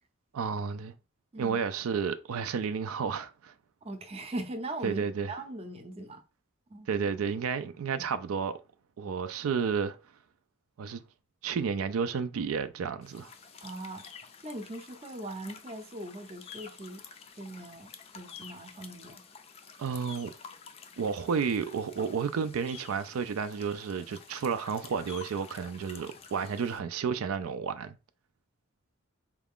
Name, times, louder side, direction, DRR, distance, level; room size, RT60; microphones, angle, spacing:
voice 1, 0.3-0.9 1.4-3.5 4.8-5.3 6.9-8.5 9.0-10.0 10.8-11.0 11.4-13.3 19.8-20.3 21.0-28.0, right 6 dB, 80° right, 0.4 m, -31 dB
voice 2, 3.8-5.0 5.3-6.2 6.7-6.9 13.6-14.0 14.4-17.0 17.4-19.2, right 1 dB, 30° right, 0.5 m, -40 dB
sound 1, 13.0-26.8, left 6 dB, 25° left, 0.3 m, -50 dB
4.6 x 2.4 x 3.5 m
head